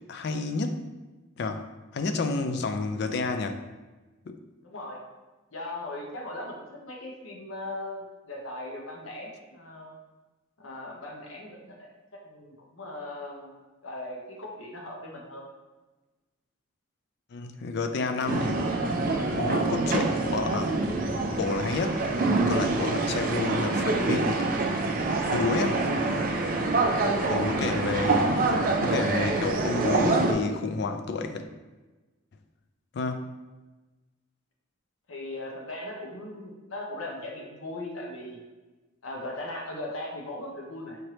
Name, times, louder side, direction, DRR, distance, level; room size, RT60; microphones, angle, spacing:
voice 1, 0.1-0.8 1.4-3.6 4.3-4.4 17.3-18.6 19.3-20.7 21.3-22.0 22.5-24.5 25.3-25.8 27.3-28.3 28.8-31.4 32.9-33.2, left 3 dB, 50° left, 7 dB, 0.3 m, -30 dB
voice 2, 4.6-5.0 5.5-10.0 10.6-11.9 12.2-13.5 13.8-15.4 26.9-27.9 35.1-38.4 39.0-41.0, left 1 dB, 70° left, -1 dB, 0.8 m, -38 dB
sound 1, 18.3-30.3, right 3 dB, 40° right, 0.4 m, -26 dB
5.1 x 3.1 x 2.9 m, 1.2 s
head